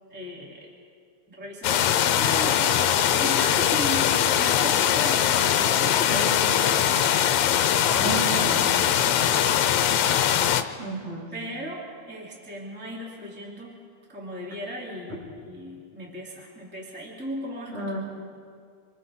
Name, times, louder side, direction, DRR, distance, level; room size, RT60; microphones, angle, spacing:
voice 1, 0.1-0.7 1.3-7.2 7.5-9.3 9.7-10.0 10.3-10.8 11.3-11.8 12.1-13.8 14.1-18.0, equal, 5° right, -4 dB, 2.9 m, -37 dB
sound 1, 1.6-10.6, left 10 dB, 75° left, 2.0 m, -21 dB
voice 2, 6.1-6.4 7.9-8.8 10.8-11.3 17.7-18.0, right 3 dB, 55° right, -5 dB, 7.1 m, -33 dB
27.5 x 26.5 x 3.8 m, 2.2 s
omnidirectional pair, 3.5 m